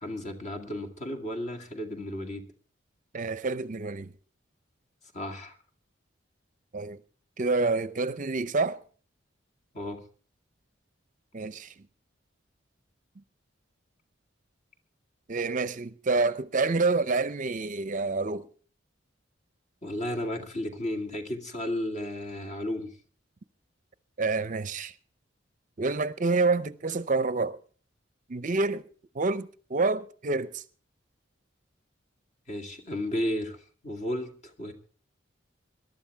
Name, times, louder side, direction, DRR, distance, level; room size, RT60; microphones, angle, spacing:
voice 1, 0.0-2.5 5.1-5.6 9.7-10.0 19.8-22.9 32.5-34.7, left 1 dB, 40° left, 2.2 m, -33 dB
voice 2, 3.1-4.1 6.7-7.0 7.4-8.8 11.3-11.7 15.3-18.5 24.2-24.9 25.8-27.6 28.3-28.9 29.1-30.6, right 3 dB, 45° right, 0.6 m, -28 dB
22.0 x 12.0 x 3.5 m
head